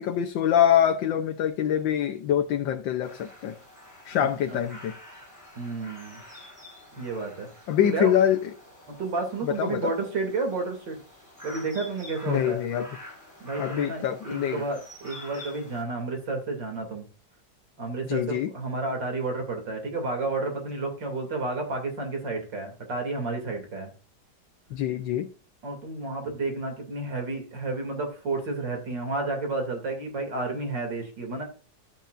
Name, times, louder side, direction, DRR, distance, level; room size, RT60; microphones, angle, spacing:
voice 1, 0.0-3.6 4.0-4.9 7.7-8.4 9.4-9.9 12.3-12.9 13.6-14.6 18.1-18.5 24.7-25.3, left 10 dB, 85° left, 1.6 m, -25 dB
sound 1, 3.0-15.8, left 1 dB, 10° right, 4.7 m, -47 dB
voice 2, 4.2-4.7 5.6-6.2 7.0-7.5 7.8-8.1 8.9-11.0 11.4-12.6 13.4-17.0 17.8-23.9 25.6-31.4, right 3 dB, 75° right, 3.6 m, -31 dB
11.5 x 9.3 x 2.6 m
omnidirectional pair, 2.0 m